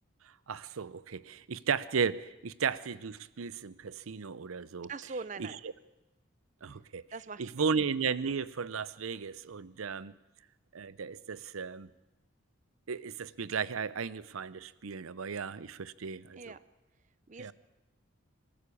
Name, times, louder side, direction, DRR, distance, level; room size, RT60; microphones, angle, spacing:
voice 1, 0.2-4.9 5.4-5.5 6.6-7.0 7.4-10.1 10.7-11.9 12.9-16.4 17.4-17.5, right 6 dB, 90° right, 0.6 m, -35 dB
voice 2, 4.9-5.6 6.6-6.7 7.1-7.7 16.3-16.6 17.3-17.5, right 4 dB, 35° right, 0.6 m, -42 dB
24.0 x 13.5 x 8.5 m
head